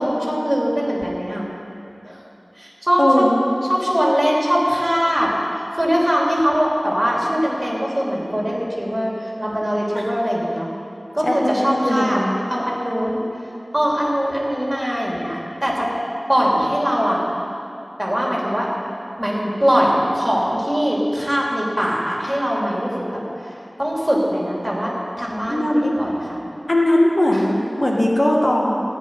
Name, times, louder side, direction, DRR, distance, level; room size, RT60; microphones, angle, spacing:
voice 1, 0.0-1.4 2.0-2.2 2.6-3.3 3.6-10.7 11.1-12.2 12.5-13.5 13.7-15.9 16.3-17.3 18.0-18.7 19.2-26.4 27.3-27.5, equal, 20° right, -4 dB, 3.1 m, -21 dB
voice 2, 3.0-3.3 11.2-12.4 25.5-25.9 26.7-28.8, left 1 dB, 55° left, -2 dB, 1.7 m, -19 dB
16.5 x 5.5 x 9.7 m, 2.7 s
wide cardioid pair, 40°, 0 cm